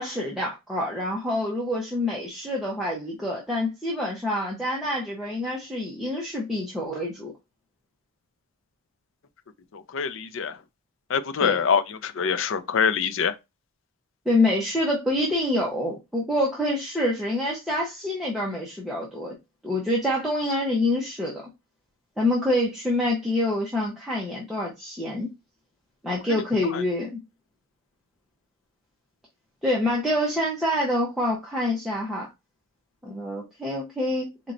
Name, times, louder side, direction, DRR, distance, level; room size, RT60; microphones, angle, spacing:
voice 1, 0.0-7.3 11.4-11.6 14.3-19.3 19.6-21.4 22.2-25.3 26.0-27.2 29.6-32.3 33.0-34.3, left 1 dB, ahead, 0.8 m, -26 dB
voice 2, 9.7-10.6 11.1-13.3 26.3-26.4 26.7-26.8, left 6 dB, 55° left, 0.4 m, -25 dB
4.1 x 3.1 x 2.5 m
head